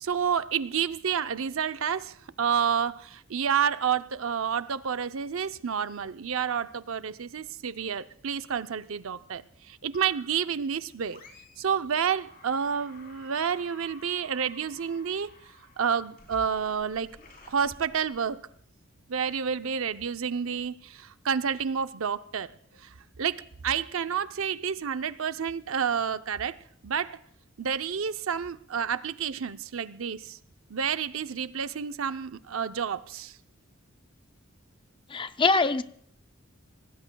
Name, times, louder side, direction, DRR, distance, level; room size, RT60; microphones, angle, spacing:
voice 1, 0.0-11.2 11.6-15.3 15.8-17.2 17.5-18.4 19.1-22.5 22.8-26.6 26.8-27.2 27.6-30.4 30.7-33.4, right 7 dB, 80° right, 0.6 m, -29 dB
sound 1, 9.9-10.5 11.1-11.7 12.0-18.5, left 2 dB, 45° left, 3.6 m, -53 dB
voice 2, 35.1-35.8, left 4 dB, 25° left, 0.5 m, -23 dB
25.5 x 19.0 x 2.3 m
head